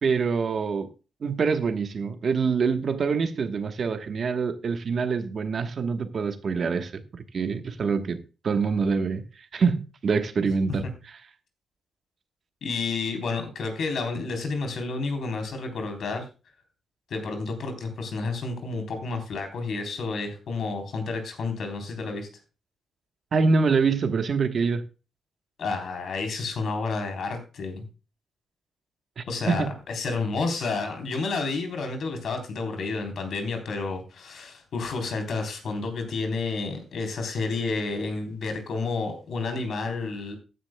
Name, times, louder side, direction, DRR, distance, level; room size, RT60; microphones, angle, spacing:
voice 1, 0.0-0.9 1.2-9.3 9.5-10.8 23.3-24.8 29.2-29.7, right 5 dB, 50° right, 1.2 m, -25 dB
voice 2, 12.6-16.3 17.1-22.3 25.6-27.9 29.3-40.4, left 3 dB, 65° left, 3.7 m, -30 dB
15.0 x 10.0 x 2.2 m
wide cardioid pair, 140°, 0 cm